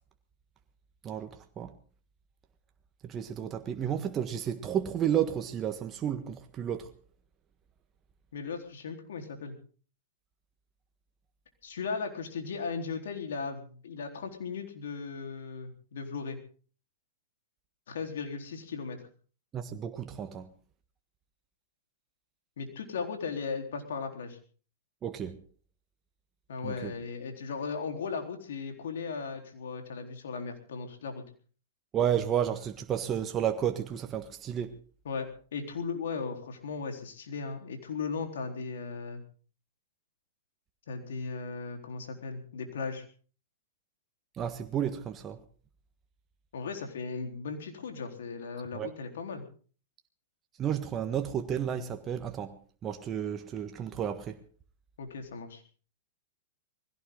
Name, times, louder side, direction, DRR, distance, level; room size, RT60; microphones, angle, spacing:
voice 1, 3.0-6.9 19.5-20.5 25.0-25.4 26.6-26.9 31.9-34.7 44.4-45.4 48.7-48.9 50.6-52.6 52.8-54.4, right 9 dB, 25° right, 1.5 m, -32 dB
voice 2, 8.3-9.6 11.6-16.4 17.9-19.0 22.6-24.4 26.5-31.2 35.0-39.2 40.9-43.0 46.5-49.4 55.0-55.6, left 5 dB, 75° left, 4.1 m, -37 dB
21.0 x 16.5 x 3.9 m
hypercardioid pair, 120°, 0 cm